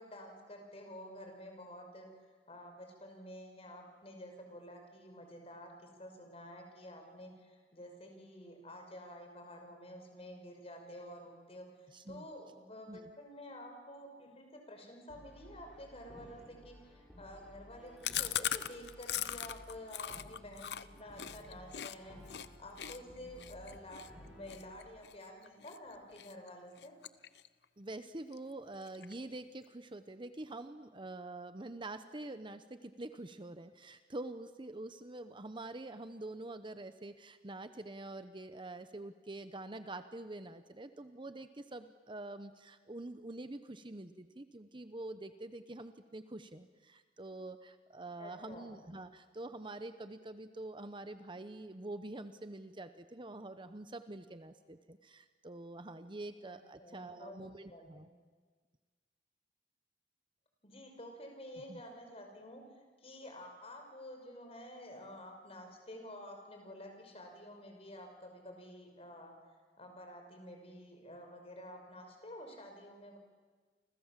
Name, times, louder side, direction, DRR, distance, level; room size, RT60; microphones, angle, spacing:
voice 1, 0.0-2.1 2.5-27.0 48.2-48.7 56.4-58.1 60.6-62.6 63.0-69.3 69.8-73.2, left 1 dB, 35° left, 3 dB, 5.9 m, -50 dB
voice 2, 11.9-12.3 12.9-13.1 27.8-58.1 61.7-61.8, right 2 dB, 30° right, 10 dB, 1.0 m, -46 dB
Brass instrument, 15.1-24.9, equal, 5° right, 6.6 m, -56 dB
Chewing mastication, 18.0-21.9 22.3-22.5 22.8-25.8 26.2-26.5 26.8-27.6 27.9-28.0 28.3-28.4 28.7-29.3, left 11 dB, 70° left, 0.8 m, -39 dB
30.0 x 26.0 x 7.5 m, 1.5 s
head